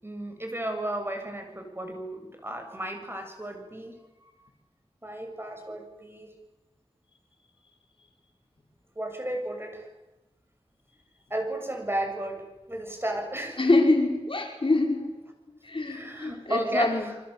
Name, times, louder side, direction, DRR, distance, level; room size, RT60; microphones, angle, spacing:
voice 1, 0.0-4.3 5.0-6.3 9.0-9.9 11.3-13.6 15.9-17.1, right 1 dB, 20° right, 4 dB, 7.0 m, -34 dB
voice 2, 13.6-15.1 15.6-17.1, left 2 dB, 55° left, 3 dB, 5.1 m, -25 dB
28.5 x 25.0 x 8.3 m, 1.0 s
wide cardioid pair, 65°, 11 cm